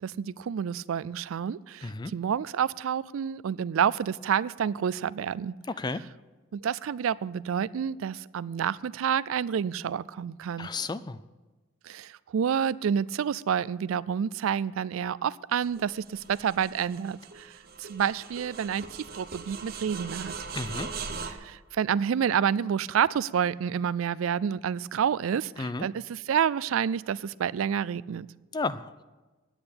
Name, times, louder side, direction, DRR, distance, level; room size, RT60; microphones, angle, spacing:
voice 1, 0.0-5.5 6.5-10.7 11.8-20.3 21.2-28.3, right 8 dB, 90° right, 20 dB, 0.4 m, -29 dB
voice 2, 1.8-2.1 5.7-6.0 10.6-11.2 20.5-20.9 25.6-25.9 28.5-29.0, left 3 dB, 20° left, 15 dB, 0.3 m, -32 dB
sound 1, 15.6-21.3, right 5 dB, 50° right, 0.9 m, -40 dB
9.9 x 8.8 x 8.5 m, 1.2 s
head